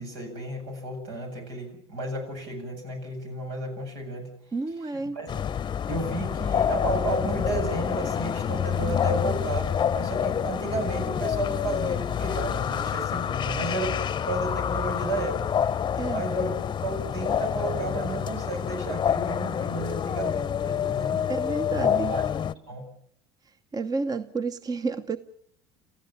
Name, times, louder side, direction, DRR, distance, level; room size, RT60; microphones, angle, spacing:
voice 1, 0.0-4.3 5.1-5.3 5.9-15.4 16.1-16.6 16.8-21.2 21.7-22.2 22.7-22.8, right 2 dB, 80° right, 3 dB, 7.8 m, -32 dB
voice 2, 4.5-5.2 15.9-16.2 21.3-22.2 23.7-25.2, right 4 dB, 25° right, 11 dB, 1.0 m, -30 dB
sound 1, 5.3-22.5, left 8 dB, 30° left, 0.8 m, -27 dB
28.5 x 14.5 x 7.3 m, 0.65 s
hypercardioid pair, 80°, 14 cm